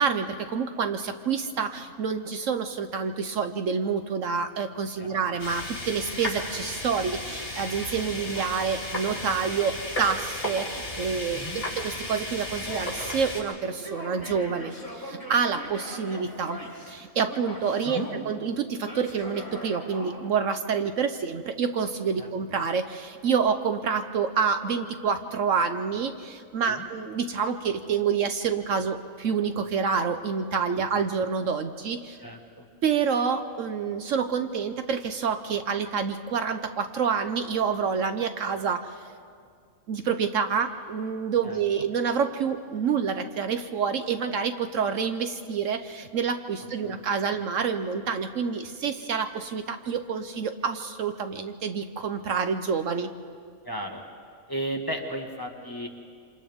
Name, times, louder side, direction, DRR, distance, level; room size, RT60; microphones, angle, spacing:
voice 1, 0.0-11.4 11.8-16.6 16.9-32.2 32.8-39.0 39.9-53.1, right 6 dB, 65° right, 8 dB, 1.1 m, -28 dB
sound 1, 5.4-13.4, left 1 dB, 40° left, 4.8 m, -34 dB
voice 2, 11.3-11.6 17.9-18.1 22.2-22.3 26.7-26.9 32.2-32.6 41.4-41.6 46.8-46.9 53.6-54.0 54.5-55.9, equal, 15° left, 1 dB, 1.6 m, -34 dB
Male speech man speaking / Yell, 12.6-13.3 13.7-17.0 17.2-18.2 18.8-20.2, equal, 15° right, 7.1 m, -40 dB
27.5 x 27.0 x 3.6 m, 2.2 s
omnidirectional pair, 1.5 m